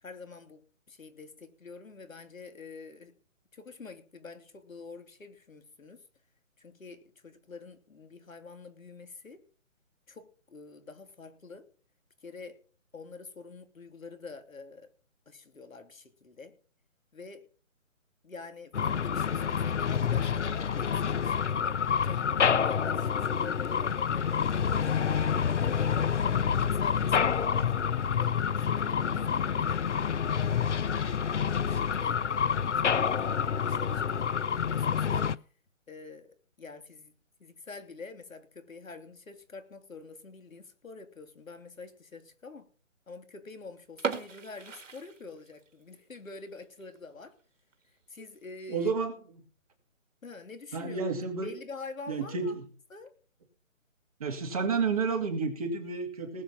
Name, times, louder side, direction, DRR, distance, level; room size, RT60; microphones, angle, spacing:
voice 1, 0.0-3.1 3.5-6.0 6.6-9.4 10.1-11.7 12.2-12.6 12.9-14.9 15.3-16.5 17.1-17.5 18.2-29.6 30.3-30.7 31.3-33.1 33.6-35.4 35.9-37.1 37.4-42.7 43.1-47.3 48.1-48.9 50.2-51.0 51.4-52.5 52.9-53.1, left 4 dB, 80° left, 8 dB, 3.1 m, -47 dB
sound 1, 18.7-35.3, left 7 dB, 60° left, 0.7 m, -28 dB
sound 2, 43.9-45.8 46.1-46.2 46.8-47.0 47.4-47.5 47.7-47.8 48.6-48.9, right 5 dB, 65° right, 1.8 m, -37 dB
voice 2, 48.7-49.2 50.7-51.5 52.1-52.6 54.2-56.4, right 4 dB, 25° right, 3 dB, 2.4 m, -30 dB
19.5 x 7.7 x 5.6 m, 0.40 s
hypercardioid pair, 175°, 40 cm